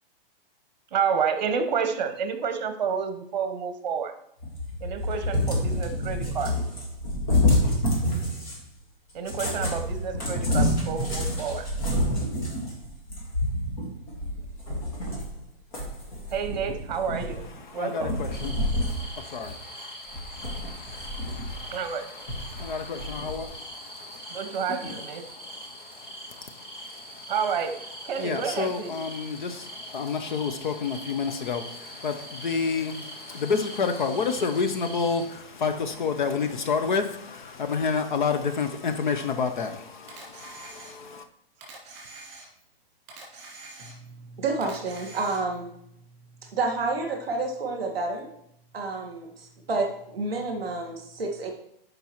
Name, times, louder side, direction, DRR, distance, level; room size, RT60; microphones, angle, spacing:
voice 1, 0.9-4.1 4.8-6.5 9.1-11.7 16.3-17.5 17.7-18.1 21.7-22.1 24.3-25.2 27.3-28.9, right 6 dB, 45° right, 8 dB, 1.0 m, -29 dB
Cat, 4.4-8.7 9.2-15.4 15.7-17.6 18.0-19.1 19.4-19.5 20.1-21.7 22.3-23.4, left 1 dB, 35° left, 1.8 m, -28 dB
voice 2, 17.3-27.3 28.0-41.3, left 5 dB, 55° left, 8 dB, 0.7 m, -30 dB
sound 1, 18.3-35.2, right 1 dB, 15° left, 1.1 m, -43 dB
Camera, 40.1-41.2 41.6-42.7 43.1-44.2 44.6-45.7, right 3 dB, 30° right, 3.2 m, -45 dB
voice 3, 43.8-45.7 46.5-48.3 48.7-51.5, right 3 dB, 5° right, -13 dB, 0.3 m, -30 dB
12.5 x 5.3 x 3.1 m, 0.74 s
hypercardioid pair, 175°, 30 cm